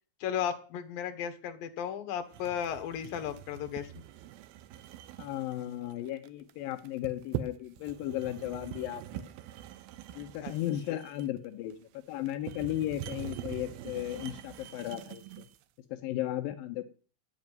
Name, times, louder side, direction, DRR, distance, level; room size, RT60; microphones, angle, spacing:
voice 1, 0.2-3.9 10.4-10.5 10.9-11.0, left 9 dB, 65° left, 7 dB, 2.7 m, -35 dB
sound 1, 2.3-15.6, right 12 dB, 85° right, 2.1 m, -44 dB
voice 2, 5.2-9.3 10.1-11.8 12.1-15.4 15.9-16.9, left 13 dB, 80° left, 6 dB, 2.1 m, -35 dB
9.6 x 8.5 x 9.2 m, 0.40 s
omnidirectional pair, 5.4 m